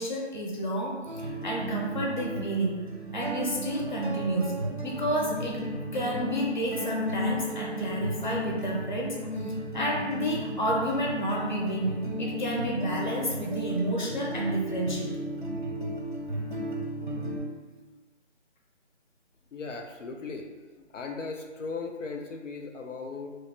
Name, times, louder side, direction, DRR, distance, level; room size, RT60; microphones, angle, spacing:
voice 1, 0.0-2.8 3.1-5.7 5.9-15.1, right 1 dB, 40° left, -2 dB, 0.7 m, -30 dB
sound 1, 1.1-17.4, equal, 45° right, 0.6 m, -34 dB
voice 2, 19.5-20.5 20.8-23.4, left 4 dB, 85° left, 2 dB, 0.6 m, -37 dB
3.1 x 2.1 x 4.2 m, 1.3 s
figure-of-eight pair, 160°, 36 cm